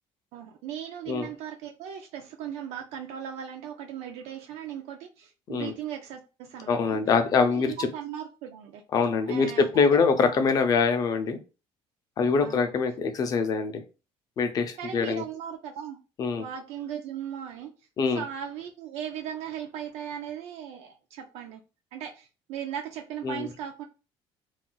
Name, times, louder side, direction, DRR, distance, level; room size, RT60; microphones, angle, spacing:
voice 1, 0.3-7.0 7.4-8.8 9.3-9.9 10.2-10.4 12.4-12.6 14.8-16.0 16.4-17.7 18.1-21.6 21.9-23.8, right 9 dB, 75° right, 0.4 m, -38 dB
voice 2, 6.7-7.9 8.9-11.4 12.2-13.8 14.4-15.2 16.2-16.4 18.0-18.2 23.2-23.5, left 5 dB, 35° left, 0.4 m, -24 dB
2.4 x 2.2 x 3.8 m
cardioid pair, 170°, 11 cm